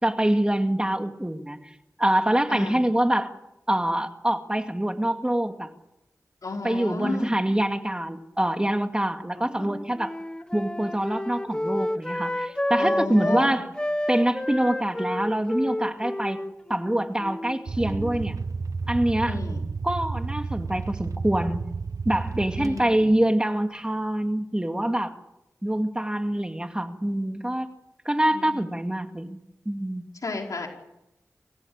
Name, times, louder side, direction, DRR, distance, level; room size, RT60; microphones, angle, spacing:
voice 1, 0.0-1.6 2.0-3.3 3.7-5.7 6.6-10.1 10.5-13.7 14.1-16.4 16.7-18.4 18.9-19.4 19.8-21.6 22.1-25.2 25.6-27.7 28.1-29.4 29.7-30.1, right 1 dB, 15° right, 7 dB, 2.2 m, -25 dB
voice 2, 2.5-2.8 6.4-7.4 9.6-9.7 12.8-13.6 19.3-19.6 22.6-23.1 28.3-28.6 30.2-30.7, left 3 dB, 75° left, 2 dB, 4.9 m, -32 dB
Wind instrument woodwind instrument, 9.4-13.5 13.8-18.2, left 1 dB, 15° left, 1.1 m, -30 dB
sound 1, 17.7-23.2, right 4 dB, 75° right, 0.9 m, -32 dB
25.5 x 16.0 x 8.9 m, 0.88 s
wide cardioid pair, 60°, 6 cm